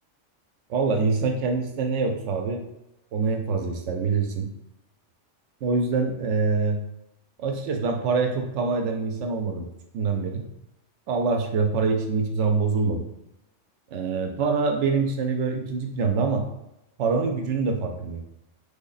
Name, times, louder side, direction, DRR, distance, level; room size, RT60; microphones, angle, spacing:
voice 1, 0.7-2.6 3.1-4.5 5.6-6.8 7.4-9.7 9.9-10.4 11.1-13.1 13.9-16.4 17.0-18.2, right 4 dB, 80° right, 4 dB, 0.9 m, -25 dB
3.4 x 2.1 x 3.8 m, 0.86 s
omnidirectional pair, 1.2 m